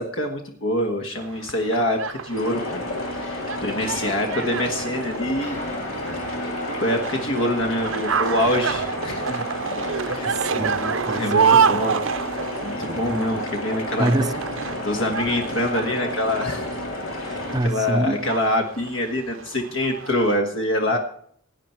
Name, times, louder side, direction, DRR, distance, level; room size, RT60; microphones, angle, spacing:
voice 1, 0.0-2.8 3.2-5.6 6.4-6.6 6.8-9.4 10.0-10.4 11.1-12.0 12.3-14.1 14.8-16.7 17.2-21.0, left 1 dB, 70° left, 1.5 m, -25 dB
sound 1, 1.2-20.4, right 6 dB, 75° right, 0.7 m, -28 dB
sound 2, 2.3-17.6, left 1 dB, 90° left, 3.0 m, -31 dB
sound 3, 5.4-10.2, left 2 dB, 35° left, 2.4 m, -40 dB
voice 2, 10.2-11.9 12.9-13.4 14.0-14.7 17.3-18.3 20.9-21.0, right 1 dB, 20° right, 0.5 m, -27 dB
17.0 x 9.3 x 4.4 m
head